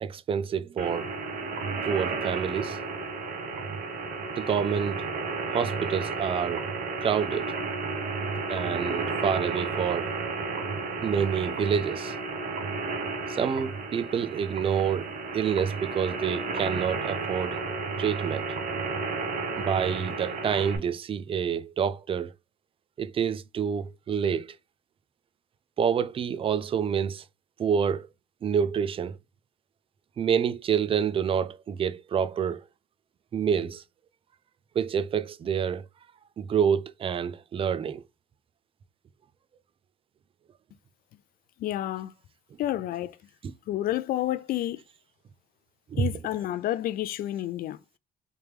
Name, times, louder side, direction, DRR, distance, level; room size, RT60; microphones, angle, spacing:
voice 1, 0.0-1.1 1.9-2.8 4.4-5.0 5.5-6.7 7.0-7.5 8.5-10.1 11.0-12.1 13.4-17.6 18.0-18.5 19.6-22.3 23.0-24.5 25.8-27.2 27.6-28.1 28.4-29.2 30.2-32.6 33.3-33.8 34.8-35.8 36.4-38.0 45.9-46.0, right 7 dB, 35° right, 0.4 m, -27 dB
sound 1, 0.8-20.8, right 4 dB, 55° right, 1.1 m, -32 dB
voice 2, 41.6-42.1 42.6-43.2 43.7-44.8 46.0-47.8, left 13 dB, 60° left, 0.4 m, -30 dB
3.3 x 3.0 x 3.3 m
cardioid pair, 110°, 17 cm